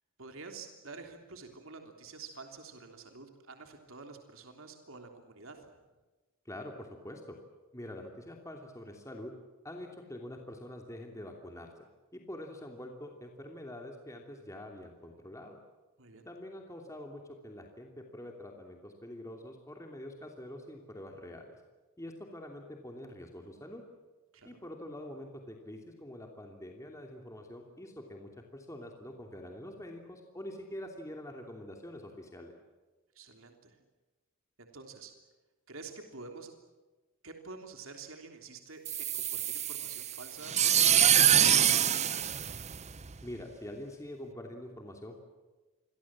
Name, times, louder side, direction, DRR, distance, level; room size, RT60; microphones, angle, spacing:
voice 1, 0.2-5.8 16.0-16.2 24.3-24.6 33.1-33.8 34.6-35.1 35.7-36.5 37.2-42.3, right 4 dB, 70° right, 4 dB, 3.4 m, -49 dB
voice 2, 6.4-7.4 7.7-9.3 9.6-11.7 12.1-15.6 16.2-21.6 22.0-23.8 24.4-32.5 43.2-45.3, left 1 dB, 15° left, 2 dB, 2.9 m, -45 dB
sound 1, 38.9-43.2, right 10 dB, 35° right, 0.8 m, -25 dB
28.0 x 23.5 x 7.5 m, 1.2 s
head